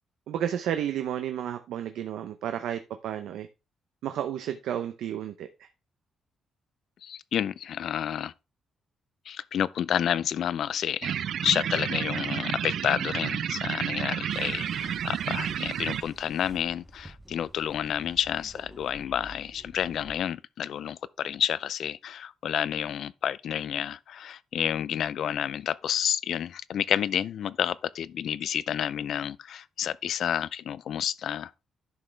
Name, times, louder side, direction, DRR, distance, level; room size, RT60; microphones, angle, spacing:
voice 1, 0.3-3.5 4.0-5.7, right 10 dB, 80° right, 0.8 m, -32 dB
voice 2, 7.0-8.3 9.3-31.7, left 9 dB, 55° left, 0.4 m, -30 dB
sound 1, 11.0-16.0, right 9 dB, 55° right, 0.3 m, -31 dB
sound 2, 14.3-20.2, right 1 dB, 5° right, 0.7 m, -50 dB
11.0 x 6.3 x 3.3 m
cardioid pair, 175°, 0 cm